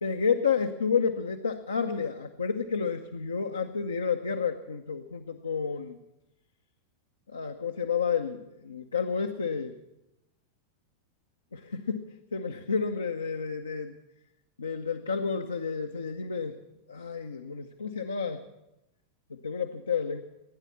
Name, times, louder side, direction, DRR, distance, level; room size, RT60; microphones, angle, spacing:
voice 1, 0.0-6.0 7.3-9.7 11.5-14.0 14.6-16.6 16.9-18.4 19.3-20.2, left 6 dB, 75° left, 4 dB, 0.8 m, -30 dB
16.5 x 9.9 x 8.6 m, 0.92 s
figure-of-eight pair, 90°, 0 cm